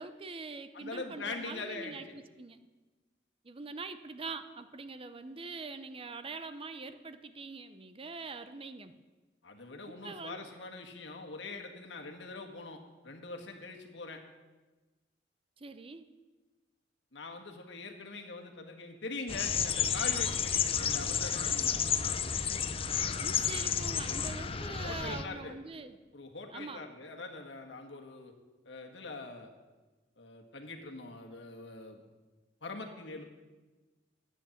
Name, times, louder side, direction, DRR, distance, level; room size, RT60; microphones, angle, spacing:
voice 1, 0.0-2.6 3.4-8.9 10.0-10.4 15.6-16.1 22.8-26.0 26.5-26.8, right 3 dB, 30° right, 11 dB, 0.6 m, -43 dB
voice 2, 0.7-2.2 9.4-14.2 17.1-21.9 24.8-25.6 26.1-28.3 28.6-29.5 30.2-32.0 32.6-33.2, left 3 dB, 75° left, 3 dB, 1.6 m, -43 dB
sound 1, 19.3-25.2, left 7 dB, 30° left, 0.5 m, -31 dB
12.0 x 9.1 x 7.2 m, 1.2 s
head